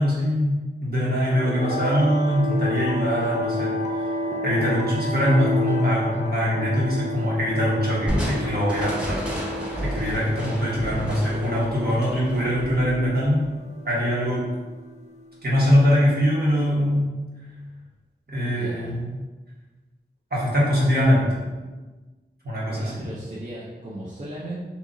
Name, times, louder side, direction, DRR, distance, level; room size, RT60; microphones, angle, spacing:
voice 1, 0.0-4.1 4.4-9.2 9.8-13.4 13.8-14.4 15.4-17.1 18.3-19.1 20.3-21.4 22.4-22.9, equal, 60° right, -7 dB, 1.3 m, -22 dB
sound 1, 1.2-15.3, left 1 dB, 40° left, 0.4 m, -31 dB
Crushing, 8.1-13.5, equal, 5° right, 0.8 m, -31 dB
voice 2, 18.3-19.2 22.7-24.7, right 1 dB, 40° right, -7 dB, 0.6 m, -37 dB
2.9 x 2.4 x 3.9 m, 1.3 s
wide cardioid pair, 60°, 18 cm